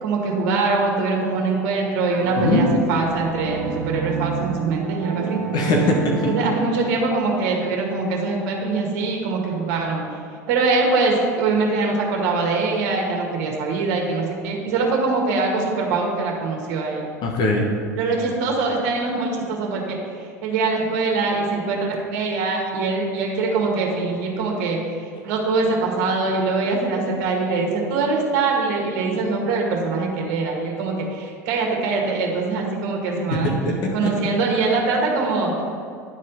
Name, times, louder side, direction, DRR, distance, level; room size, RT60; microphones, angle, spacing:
voice 1, 0.0-5.4 6.3-10.0 10.5-17.1 18.0-20.0 20.4-24.8 25.2-33.5 33.9-35.6, right 3 dB, 60° right, 0 dB, 1.8 m, -23 dB
sound 1, 2.1-7.0, right 5 dB, 85° right, 0.5 m, -29 dB
voice 2, 5.5-6.3 17.2-17.7 33.3-33.5 33.8-34.3, left 2 dB, 50° left, 0 dB, 1.3 m, -21 dB
10.5 x 4.3 x 5.4 m, 2.4 s
hypercardioid pair, 80°, 9 cm